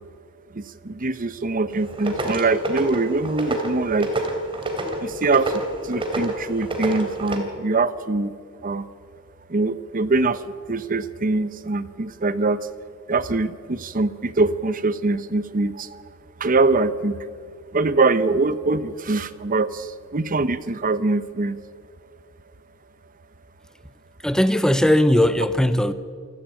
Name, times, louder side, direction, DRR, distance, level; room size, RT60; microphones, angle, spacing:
voice 1, 0.5-4.1 5.0-5.6 5.9-8.3 8.6-8.8 9.5-10.4 10.7-12.6 13.1-15.9 16.4-17.2 17.7-21.6, right 3 dB, 40° right, 0.8 m, -23 dB
sound 1, 1.7-7.4, right 1 dB, 25° right, 3.0 m, -28 dB
voice 2, 24.2-25.9, left 1 dB, 5° left, 0.6 m, -18 dB
27.5 x 12.0 x 8.9 m
head